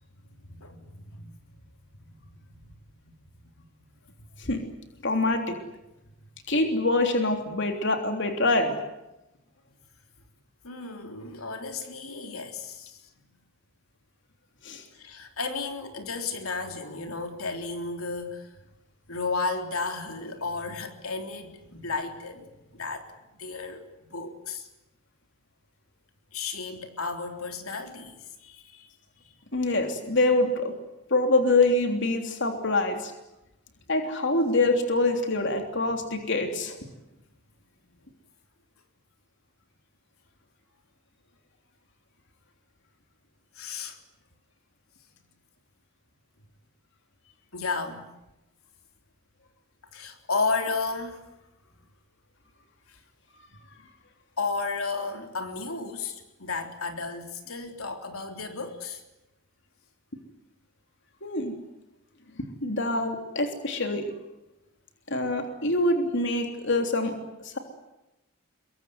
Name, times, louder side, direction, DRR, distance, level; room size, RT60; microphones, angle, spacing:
voice 1, 0.5-1.3 2.0-2.1 2.6-2.7 3.1-3.2 3.6-3.7 10.6-13.0 14.9-18.5 19.1-22.5 22.7-23.1 23.4-24.7 26.3-28.9 43.6-44.0 47.5-48.1 49.9-51.2 52.9-53.0 54.4-59.0, left 4 dB, 80° left, 5 dB, 3.6 m, -33 dB
voice 2, 5.0-5.6 6.5-8.8 14.6-14.8 29.5-30.7 31.1-33.1 33.9-36.8 61.2-61.5 62.6-64.0 65.1-67.1 67.4-67.6, left 2 dB, 55° left, 5 dB, 3.4 m, -25 dB
26.0 x 23.0 x 9.6 m, 0.94 s
head